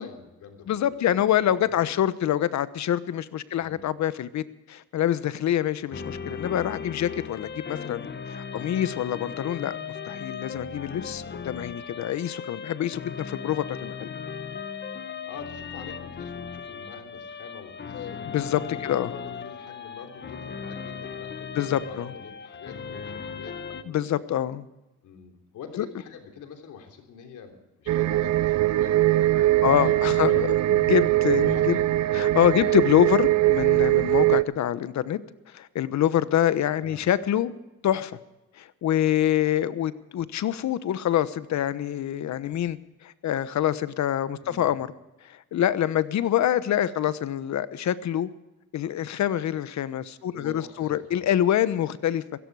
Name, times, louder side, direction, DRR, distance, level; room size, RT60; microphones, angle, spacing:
voice 1, 0.0-1.2 1.6-2.0 3.6-3.9 8.5-8.8 14.9-18.3 18.7-24.2 25.0-30.7 31.4-31.9 32.5-32.8 36.8-37.0 44.4-44.7 50.3-51.3, left 6 dB, 80° left, 4 dB, 3.4 m, -45 dB
voice 2, 0.7-9.8 10.0-14.1 17.9-19.1 21.6-22.1 23.9-24.6 29.6-31.8 32.1-35.2 35.5-37.5 37.8-38.2 38.6-42.8 43.0-44.9 45.3-48.3 48.7-52.2, left 11 dB, 65° left, 15 dB, 1.1 m, -26 dB
sound 1, 5.9-23.8, left 6 dB, 35° left, 1.3 m, -37 dB
sound 2, 27.9-34.4, right 15 dB, 60° right, 0.6 m, -21 dB
16.5 x 16.5 x 4.8 m, 0.99 s
cardioid pair, 90°, 30 cm